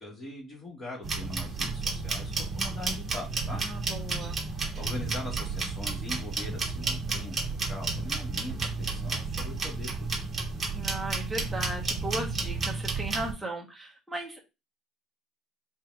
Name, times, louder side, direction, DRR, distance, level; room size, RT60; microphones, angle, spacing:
voice 1, 0.0-3.6 4.7-10.2, left 1 dB, 25° left, -2 dB, 2.3 m, -41 dB
sound 1, 1.0-13.3, right 3 dB, 30° right, 1.2 m, -32 dB
voice 2, 3.5-4.4 10.7-14.4, right 1 dB, 10° right, -1 dB, 1.2 m, -36 dB
4.4 x 2.7 x 3.6 m, 0.25 s
cardioid pair, 105°, 0 cm